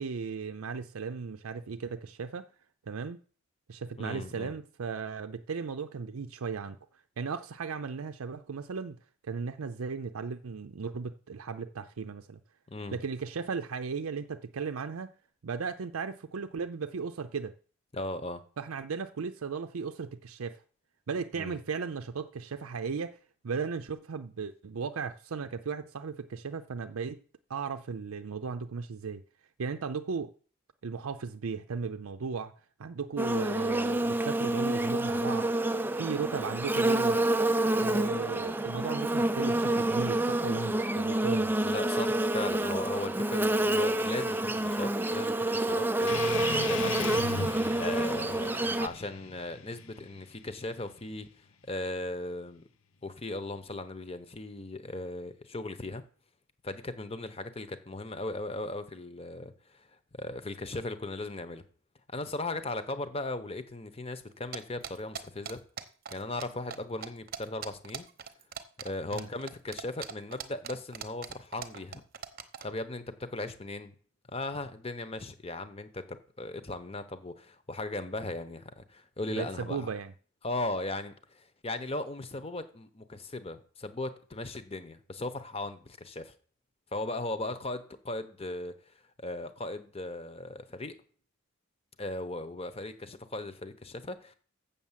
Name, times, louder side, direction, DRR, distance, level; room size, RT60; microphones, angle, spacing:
voice 1, 0.0-2.5 2.9-3.2 3.7-6.8 7.2-9.0 9.2-12.4 12.9-15.1 15.4-17.5 18.6-20.6 21.1-23.2 23.4-27.2 27.5-29.2 29.6-30.3 30.8-32.5 32.8-35.5 35.9-37.2 37.8-41.5 69.1-69.3 79.3-80.1, right 5 dB, 85° right, 0.5 m, -36 dB
voice 2, 4.0-4.6 12.7-13.0 17.9-18.4 21.4-21.6 41.6-51.3 51.7-52.6 53.0-56.0 56.6-59.9 60.2-61.6 62.1-65.6 66.1-68.1 68.8-72.0 72.6-73.9 74.3-79.9 80.4-86.3 86.9-91.0 92.0-94.3, left 2 dB, 30° left, 0.9 m, -37 dB
Buzz, 33.2-48.9, right 1 dB, 10° right, 0.4 m, -28 dB
sound 1, 46.1-51.1, left 5 dB, 85° left, 0.9 m, -38 dB
sound 2, 64.5-66.4 66.7-66.8 67.0-72.7, right 7 dB, 45° right, 0.9 m, -40 dB
7.3 x 7.0 x 7.4 m
head